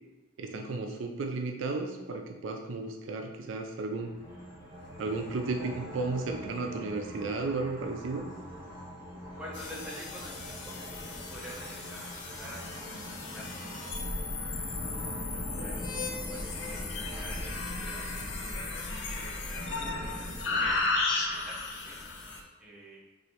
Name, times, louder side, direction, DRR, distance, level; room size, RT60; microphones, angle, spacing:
voice 1, 0.4-4.1 5.0-8.2, right 3 dB, 75° right, 4 dB, 0.4 m, -34 dB
sound 1, 4.0-17.5, equal, 25° left, 1.2 m, -45 dB
voice 2, 9.4-12.0 12.3-13.7 14.3-15.8 16.2-20.9 21.2-21.6 21.8-22.0 22.6-23.0, equal, 5° right, -7 dB, 0.8 m, -48 dB
sound 2, 9.5-22.4, left 3 dB, 70° left, 0.6 m, -35 dB
3.1 x 2.7 x 4.2 m, 1.2 s
head